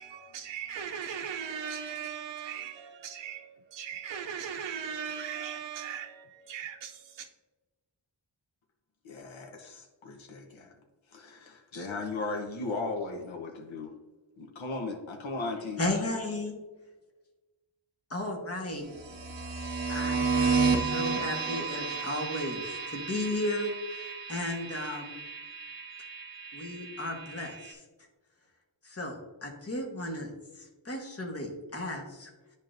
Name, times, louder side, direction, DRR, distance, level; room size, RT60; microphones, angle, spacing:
voice 1, 0.0-7.3, right 8 dB, 65° right, 0.6 m, -38 dB
voice 2, 9.0-10.7 11.1-13.9 14.4-15.8, left 3 dB, 75° left, 1.0 m, -37 dB
voice 3, 15.8-16.6 18.1-18.9 19.9-24.0 24.3-25.1 26.5-27.8 28.8-30.3 30.5-32.3, left 1 dB, 30° left, 1.3 m, -34 dB
sound 1, 18.9-27.7, right 4 dB, 45° right, 1.0 m, -32 dB
10.5 x 3.7 x 2.6 m
wide cardioid pair, 90°, 47 cm